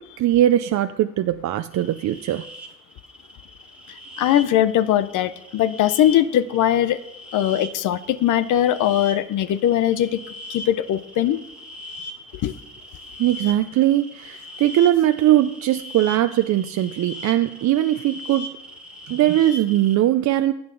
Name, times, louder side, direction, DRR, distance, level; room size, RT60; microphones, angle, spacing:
voice 1, 0.0-2.5 13.2-18.5 19.1-20.5, right 13 dB, 65° right, 10 dB, 0.5 m, -20 dB
sound 1, 1.7-20.0, left 1 dB, 5° right, 1.8 m, -40 dB
voice 2, 3.9-7.0 7.3-10.2 10.5-11.4 12.4-12.5, left 11 dB, 80° left, 14 dB, 0.7 m, -20 dB
15.5 x 8.7 x 3.9 m, 0.82 s
cardioid pair, 90°, 30 cm